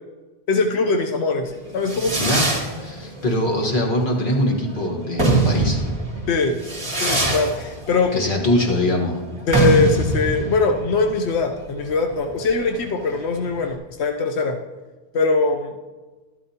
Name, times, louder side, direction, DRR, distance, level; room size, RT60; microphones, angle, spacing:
voice 1, 0.5-2.2 6.3-6.6 6.9-8.1 9.5-14.6 15.1-15.7, left 3 dB, 90° left, 4 dB, 1.0 m, -21 dB
Fireworks, 1.5-13.7, right 2 dB, 25° right, 2.4 m, -24 dB
voice 2, 2.1-2.5 2.8-5.8 8.1-9.1, left 1 dB, 50° left, 1 dB, 1.7 m, -22 dB
12.0 x 12.0 x 2.8 m, 1.3 s
omnidirectional pair, 1.1 m